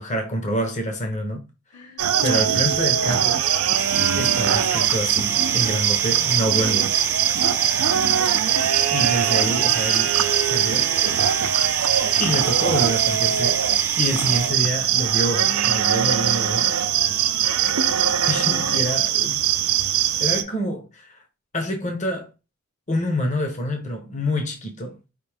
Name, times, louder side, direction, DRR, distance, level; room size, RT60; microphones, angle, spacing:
voice 1, 0.0-1.4 2.2-3.4 4.1-7.0 8.9-10.2 10.4-10.9 12.2-13.6 14.0-16.7 18.3-19.4 20.2-21.2 21.5-22.3 22.9-25.0, equal, 35° left, 0.9 m, -27 dB
voice 2, 1.7-2.1 7.6-8.0 9.4-10.2 17.1-17.4 18.4-19.0, left 3 dB, 80° left, 1.4 m, -41 dB
sound 1, 2.0-20.4, right 9 dB, 85° right, 0.5 m, -21 dB
sound 2, 3.7-14.5, right 3 dB, 10° right, 0.6 m, -33 dB
5.0 x 2.6 x 3.4 m
head